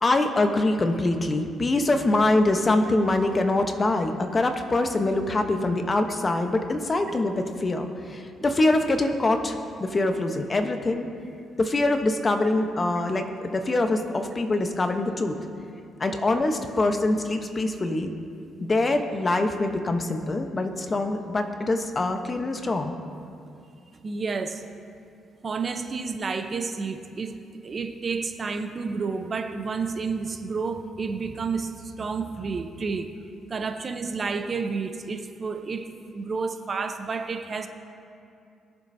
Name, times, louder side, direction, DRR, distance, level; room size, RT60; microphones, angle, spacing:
voice 1, 0.0-11.1 11.6-15.3 16.0-18.1 18.6-22.9, left 2 dB, 30° left, 6 dB, 0.9 m, -24 dB
voice 2, 24.0-24.6 25.4-27.4 27.6-33.1 33.5-37.7, right 4 dB, 40° right, 7 dB, 0.7 m, -30 dB
22.0 x 7.5 x 2.7 m, 2.5 s
cardioid pair, 90°, 0 cm